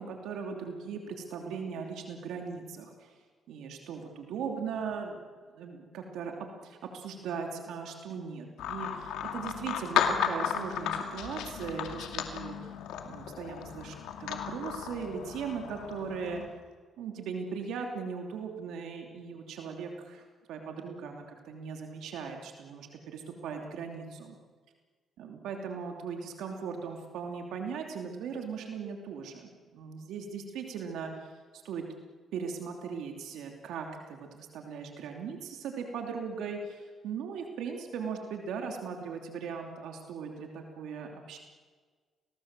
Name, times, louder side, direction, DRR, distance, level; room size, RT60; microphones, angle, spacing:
voice 1, 0.0-3.1 3.5-5.2 5.6-6.3 6.6-12.7 13.0-13.9 14.2-16.4 17.0-24.4 25.2-31.8 32.3-41.4, right 6 dB, 85° right, 3 dB, 2.9 m, -39 dB
sound 1, 8.6-16.5, left 8 dB, 90° left, 2.5 m, -34 dB
29.0 x 18.5 x 7.5 m, 1.5 s
cardioid pair, 90°, 0 cm